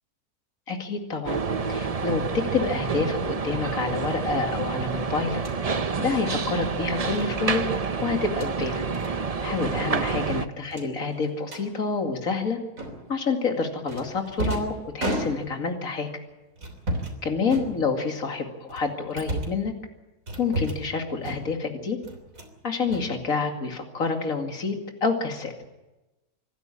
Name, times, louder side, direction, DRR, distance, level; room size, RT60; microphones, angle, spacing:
voice 1, 0.7-1.4 1.7-2.2 2.5-5.4 6.0-7.6 8.0-8.8 9.4-12.6 13.1-16.1 17.2-19.7 20.4-22.0 22.6-24.8 25.0-25.5, left 4 dB, 60° left, 4 dB, 2.8 m, -28 dB
sound 1, 1.2-10.5, right 5 dB, 35° right, 0.6 m, -28 dB
sound 2, 5.3-5.6 7.1-7.3 8.2-8.5 8.9-9.1 9.4-9.6 9.9-10.0 10.7-11.7 12.8-13.2 13.9-15.7 16.6-17.2 17.5-18.2 18.7-19.6 20.3-20.9 21.2-21.7 22.0-22.6 22.9-23.7, right 1 dB, 55° right, 3.7 m, -33 dB
26.0 x 12.5 x 10.0 m, 1.1 s
omnidirectional pair, 1.7 m